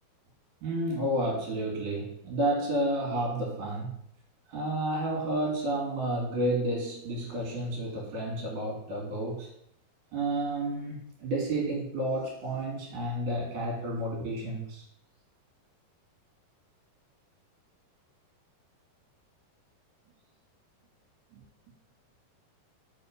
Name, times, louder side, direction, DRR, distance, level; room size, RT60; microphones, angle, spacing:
voice 1, 0.6-4.0 4.5-9.5 10.1-14.8 21.3-21.4, right 1 dB, 60° right, -1 dB, 3.6 m, -31 dB
6.9 x 5.6 x 5.1 m, 0.71 s
omnidirectional pair, 4.3 m